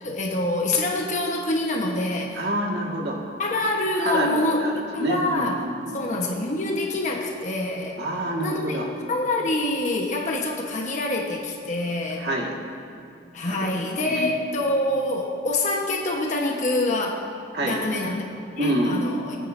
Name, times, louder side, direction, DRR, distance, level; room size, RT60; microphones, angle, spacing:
voice 1, 0.0-2.4 3.4-5.6 5.9-8.0 8.4-8.8 9.1-12.3 13.3-17.2 17.6-18.3 18.6-19.4, left 2 dB, 45° left, 0 dB, 1.2 m, -26 dB
voice 2, 2.3-3.2 4.0-4.7 5.0-6.0 8.0-8.9 12.2-12.5 13.5-13.7 14.0-14.3 17.5-17.9 18.6-19.1, right 1 dB, 70° right, -1 dB, 1.9 m, -27 dB
23.0 x 9.5 x 2.7 m, 2.5 s
head